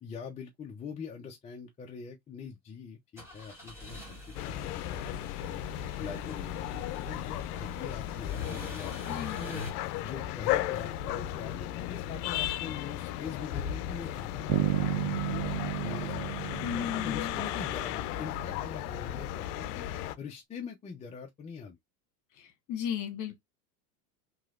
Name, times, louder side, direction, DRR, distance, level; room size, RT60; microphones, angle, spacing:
voice 1, 0.0-4.2 4.4-5.2 5.5-5.6 6.0-9.6 10.0-15.4 15.8-19.9 20.2-21.8, left 6 dB, 15° left, 0.4 m, -43 dB
sound 1, 3.2-9.7, left 3 dB, 5° right, 1.5 m, -44 dB
sound 2, 4.3-20.1, left 12 dB, 70° left, 0.6 m, -35 dB
voice 2, 9.1-9.4 16.6-17.3 22.3-23.4, left 9 dB, 40° left, 1.3 m, -35 dB
Bass guitar, 14.5-18.3, right 15 dB, 60° right, 0.7 m, -33 dB
3.0 x 2.9 x 2.4 m
supercardioid pair, 115°, 47 cm